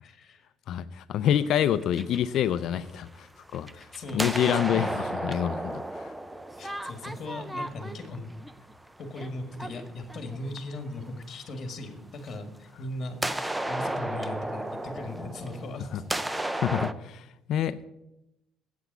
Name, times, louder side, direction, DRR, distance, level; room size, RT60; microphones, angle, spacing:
voice 1, 0.0-0.5 3.7-4.9 6.6-8.3 9.0-16.4, left 2 dB, 40° left, 6 dB, 1.7 m, -38 dB
voice 2, 0.7-6.1 15.9-16.0 16.5-17.9, left 10 dB, 60° left, 14 dB, 0.5 m, -27 dB
sound 1, 1.4-3.1 3.5-10.8 12.3-12.4 13.2-16.9, right 1 dB, 5° right, 0.5 m, -34 dB
8.3 x 8.1 x 7.9 m, 0.89 s
cardioid pair, 140°, 0 cm